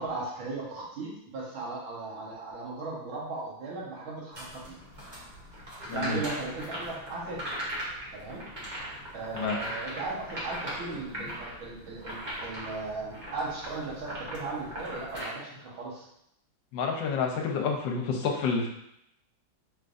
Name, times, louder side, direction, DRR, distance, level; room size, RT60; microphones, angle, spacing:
voice 1, 0.0-4.8 5.9-7.5 8.1-8.5 9.1-16.1, right 3 dB, 75° right, -5 dB, 2.1 m, -37 dB
sound 1, 4.3-15.2, equal, 30° right, 1.0 m, -39 dB
voice 2, 5.9-6.2 9.3-9.6 16.7-18.7, left 5 dB, 70° left, 1 dB, 1.3 m, -29 dB
5.1 x 3.3 x 2.6 m, 0.77 s
omnidirectional pair, 2.2 m